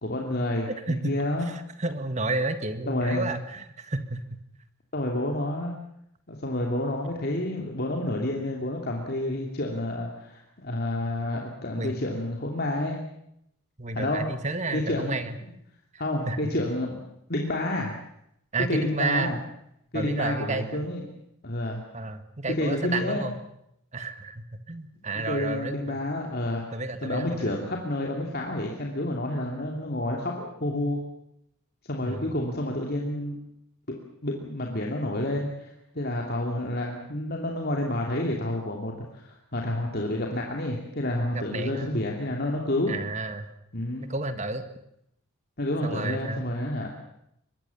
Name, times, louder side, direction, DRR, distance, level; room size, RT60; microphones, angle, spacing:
voice 1, 0.0-1.5 2.9-3.3 4.9-5.8 6.3-13.0 13.9-14.2 14.7-15.5 16.0-17.0 17.3-18.0 18.6-19.4 19.9-21.2 21.4-21.8 22.5-23.2 25.1-26.6 27.0-31.0 31.8-33.4 34.2-42.9 43.7-44.1 45.6-46.9, left 1 dB, 45° left, 0 dB, 2.8 m, -29 dB
voice 2, 0.9-1.2 1.8-4.4 11.8-11.9 13.8-15.4 16.3-16.4 18.5-19.4 19.9-20.9 21.9-23.4 23.9-26.0 26.7-27.6 32.0-32.3 41.3-42.0 42.9-43.5 44.0-44.6 45.8-46.5, right 2 dB, 35° right, 10 dB, 1.7 m, -31 dB
24.5 x 22.0 x 7.1 m, 0.76 s
head